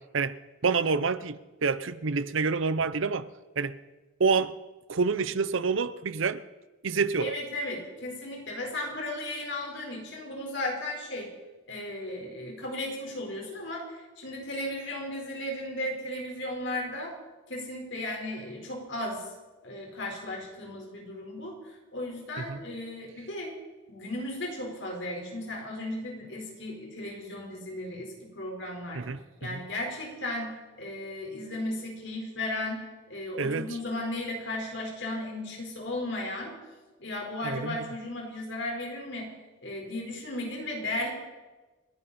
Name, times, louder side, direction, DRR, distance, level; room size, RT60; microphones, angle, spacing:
voice 1, 0.6-3.3 3.6-3.8 4.2-4.5 4.9-6.4 6.8-7.3 22.5-22.6 28.9-29.2 29.5-29.6 33.4-33.7 37.4-37.9, right 4 dB, 70° right, 16 dB, 0.7 m, -27 dB
voice 2, 7.2-11.3 11.7-17.1 17.5-19.3 19.6-23.5 23.9-29.0 29.4-36.5 37.0-39.3 39.6-41.1, left 1 dB, 60° left, 0 dB, 4.6 m, -35 dB
29.0 x 11.0 x 4.3 m, 1.2 s
head